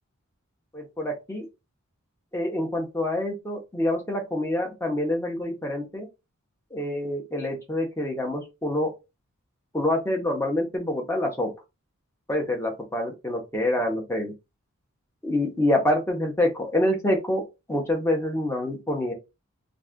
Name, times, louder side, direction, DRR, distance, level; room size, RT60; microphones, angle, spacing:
voice 1, 0.7-1.5 2.3-6.1 6.7-8.9 9.7-11.5 12.3-14.3 15.2-19.1, left 1 dB, 10° left, 0.6 m, -26 dB
2.5 x 2.3 x 3.5 m
head